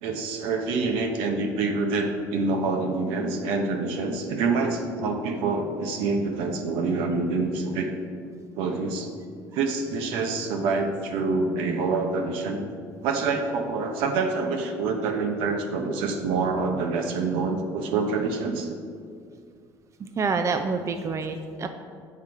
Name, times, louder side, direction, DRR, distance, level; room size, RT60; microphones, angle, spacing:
voice 1, 0.0-7.9 8.6-9.1 9.5-12.7 13.0-18.7, right 4 dB, 80° right, 4 dB, 0.9 m, -26 dB
voice 2, 20.0-21.7, right 4 dB, 35° right, 7 dB, 0.5 m, -27 dB
7.6 x 5.7 x 4.8 m, 2.2 s
supercardioid pair, 85°, 9 cm